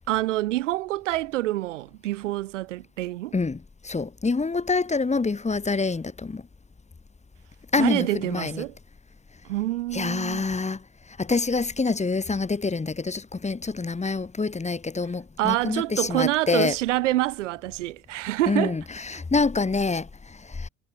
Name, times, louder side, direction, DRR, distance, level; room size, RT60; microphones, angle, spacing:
voice 1, 0.1-3.3 7.8-8.7 9.5-10.4 15.4-18.8, right 16 dB, 75° right, 1.5 m, -26 dB
voice 2, 3.3-6.4 7.7-8.6 9.9-10.8 11.2-16.7 18.5-20.7, left 4 dB, 20° left, 1.7 m, -26 dB
figure-of-eight pair, 55°, 36 cm